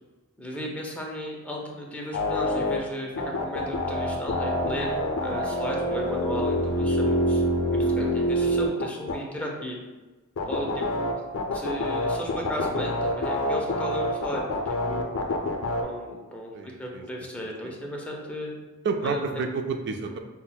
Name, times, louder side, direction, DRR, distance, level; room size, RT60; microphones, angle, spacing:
voice 1, 0.4-4.9 5.2-7.4 7.7-9.8 10.5-11.1 11.5-15.1 15.8-18.5 19.0-19.2, equal, 5° left, -2 dB, 0.5 m, -35 dB
sound 1, 2.1-2.8 3.1-9.1 10.4-15.8, left 1 dB, 70° left, 0.5 m, -26 dB
voice 2, 10.4-10.7 16.5-17.0 17.6-17.7 18.8-20.2, right 4 dB, 55° right, 6 dB, 0.3 m, -31 dB
5.7 x 2.1 x 2.2 m, 1.2 s
head